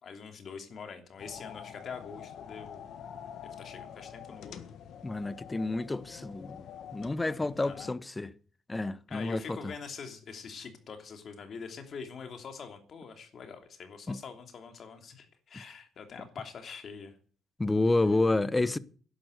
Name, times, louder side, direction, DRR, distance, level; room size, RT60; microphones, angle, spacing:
voice 1, 0.0-2.8 3.6-4.6 7.4-7.9 9.1-17.2, left 6 dB, 55° left, 3.0 m, -44 dB
sound 1, 1.2-7.9, left 8 dB, 75° left, 1.6 m, -46 dB
voice 2, 5.0-6.6 6.9-8.3 8.7-9.6 14.1-14.2 17.6-18.8, left 2 dB, 20° left, 0.9 m, -29 dB
11.5 x 10.5 x 8.0 m
cardioid pair, 90°, 0 cm